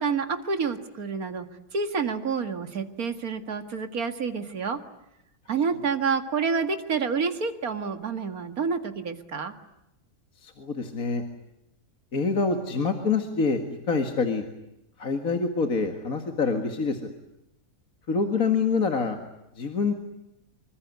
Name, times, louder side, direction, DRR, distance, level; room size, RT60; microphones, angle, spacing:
voice 1, 0.0-1.5 1.7-4.8 5.5-9.5, right 5 dB, 60° right, 8 dB, 2.4 m, -28 dB
voice 2, 10.4-11.2 12.1-13.6 13.9-14.4 15.0-17.1 18.1-19.2 19.6-19.9, left 4 dB, 55° left, 5 dB, 2.4 m, -26 dB
26.0 x 24.0 x 9.5 m, 0.87 s
omnidirectional pair, 1.8 m